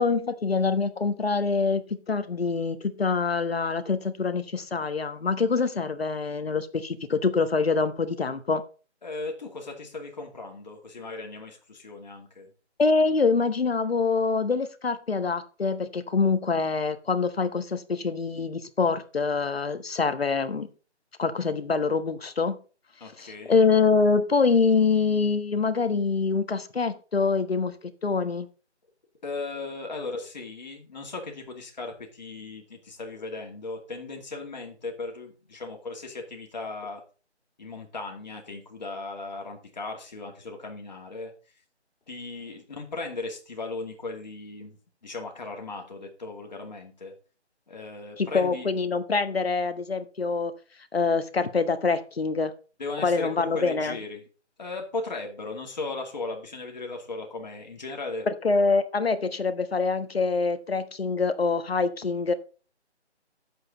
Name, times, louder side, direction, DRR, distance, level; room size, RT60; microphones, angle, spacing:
voice 1, 0.0-8.6 12.8-20.7 21.2-22.6 23.2-27.7 28.0-28.5 48.2-50.5 50.9-52.5 53.0-54.0 58.3-62.3, left 4 dB, 60° left, 10 dB, 1.3 m, -25 dB
voice 2, 9.0-12.5 23.0-23.6 29.2-37.0 37.6-41.3 42.1-47.1 47.7-48.7 52.8-54.2 54.6-58.3, left 3 dB, 40° left, 2 dB, 2.4 m, -37 dB
9.8 x 7.8 x 4.0 m, 0.36 s
figure-of-eight pair, 170°, 35 cm